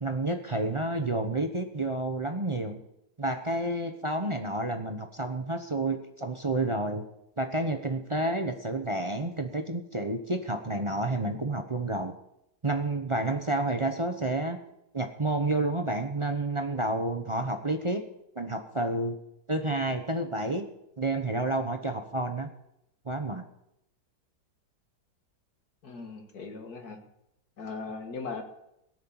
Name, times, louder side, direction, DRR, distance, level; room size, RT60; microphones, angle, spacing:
voice 1, 0.0-2.8 3.2-7.0 7.4-12.2 12.6-14.6 14.9-18.0 18.4-19.2 19.5-20.7 21.0-22.5 23.0-23.4, right 2 dB, 25° right, 6 dB, 0.6 m, -30 dB
voice 2, 25.8-27.0 27.6-28.4, left 4 dB, 55° left, 5 dB, 2.3 m, -38 dB
17.5 x 6.4 x 8.7 m, 0.82 s
omnidirectional pair, 1.9 m